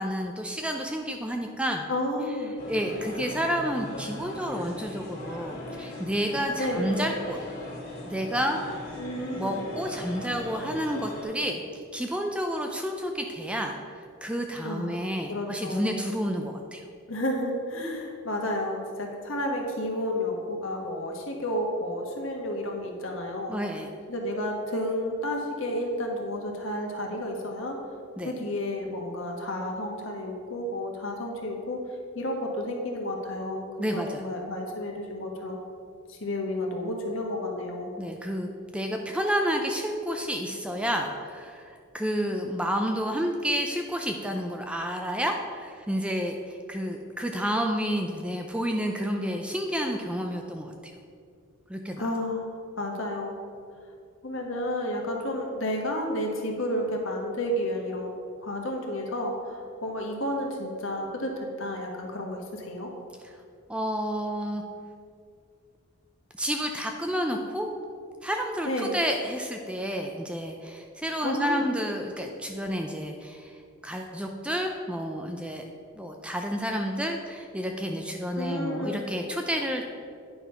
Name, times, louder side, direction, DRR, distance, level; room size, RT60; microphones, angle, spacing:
voice 1, 0.0-1.8 2.7-7.4 8.1-8.6 9.4-11.6 11.9-16.8 23.5-23.9 28.2-28.3 33.8-34.2 38.0-50.9 51.7-52.0 63.7-64.6 66.4-67.7 68.2-73.6 73.8-75.7 76.0-79.8, equal, 5° right, 3 dB, 0.4 m, -30 dB
voice 2, 1.9-2.5 6.6-6.9 9.0-9.6 14.6-16.0 17.1-23.6 24.1-27.8 28.2-31.8 32.1-35.6 36.1-37.9 52.0-53.4 54.2-58.1 58.4-62.9 68.6-69.0 71.2-71.7 78.4-79.0, left 1 dB, 65° left, 1 dB, 1.5 m, -31 dB
sound 1, 2.6-11.2, left 1 dB, 40° left, 2.2 m, -39 dB
9.6 x 5.4 x 5.7 m, 2.3 s
head